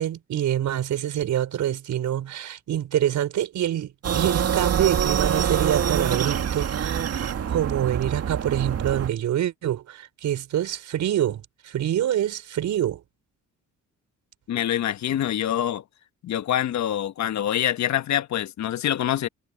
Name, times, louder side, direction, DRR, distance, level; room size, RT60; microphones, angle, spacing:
voice 1, 0.0-7.0 7.5-13.0, right 11 dB, 70° right, 5.2 m, -26 dB
sound 1, 4.0-9.1, right 8 dB, 55° right, 1.9 m, -25 dB
voice 2, 14.5-15.8 16.2-19.3, left 11 dB, 65° left, 1.2 m, -25 dB
cardioid pair, 90°, 30 cm